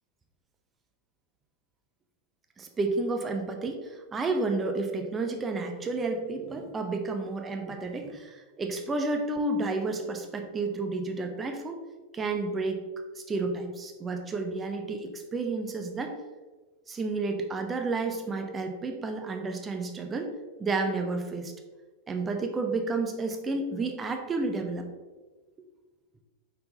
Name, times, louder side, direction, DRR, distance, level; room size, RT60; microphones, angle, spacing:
voice 1, 2.6-11.8 12.1-12.9 13.2-16.1 16.9-20.3 20.6-21.5 22.1-24.9, right 3 dB, 20° right, 5 dB, 0.8 m, -31 dB
5.4 x 4.5 x 3.9 m, 1.3 s
figure-of-eight pair, 90°, 0 cm